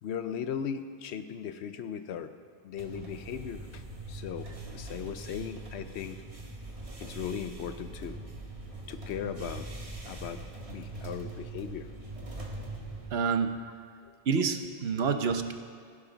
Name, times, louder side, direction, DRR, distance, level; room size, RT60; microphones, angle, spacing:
voice 1, 0.0-2.3 2.6-3.8 4.1-6.2 7.0-8.2 8.9-9.7 10.1-10.4 10.7-11.9 13.5-13.6 14.0-14.1, left 8 dB, 85° left, 10 dB, 1.0 m, -37 dB
sound 1, 2.8-13.1, right 2 dB, 35° right, 1.6 m, -42 dB
voice 2, 13.1-13.6 14.3-15.5, right 5 dB, 70° right, 8 dB, 1.0 m, -28 dB
14.5 x 11.5 x 4.0 m, 2.2 s
omnidirectional pair, 1.1 m